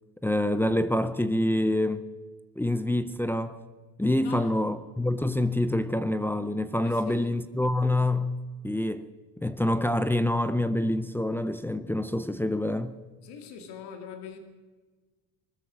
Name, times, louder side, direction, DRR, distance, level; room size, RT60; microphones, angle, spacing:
voice 1, 0.2-2.1 2.6-3.6 4.0-8.4 8.6-13.0, left 1 dB, 5° left, 0.5 m, -26 dB
voice 2, 4.2-4.6 6.8-7.4 13.2-14.4, left 7 dB, 85° left, 2.1 m, -42 dB
20.5 x 13.0 x 5.0 m
cardioid pair, 125°, 39 cm